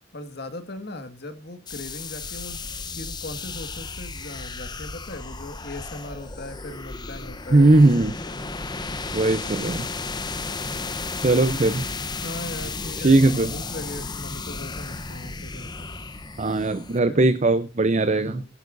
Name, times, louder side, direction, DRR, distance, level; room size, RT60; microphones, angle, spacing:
voice 1, 0.1-8.4 10.6-11.0 12.2-13.2 13.5-15.9 17.0-17.2 18.0-18.5, left 2 dB, 60° left, 8 dB, 1.9 m, -39 dB
sound 1, 1.7-17.0, left 3 dB, 25° left, 0.9 m, -34 dB
voice 2, 7.5-8.1 9.1-9.9 11.2-11.8 13.0-13.5 16.4-18.4, right 2 dB, 40° right, 12 dB, 0.6 m, -19 dB
22.5 x 11.0 x 2.6 m, 0.29 s
head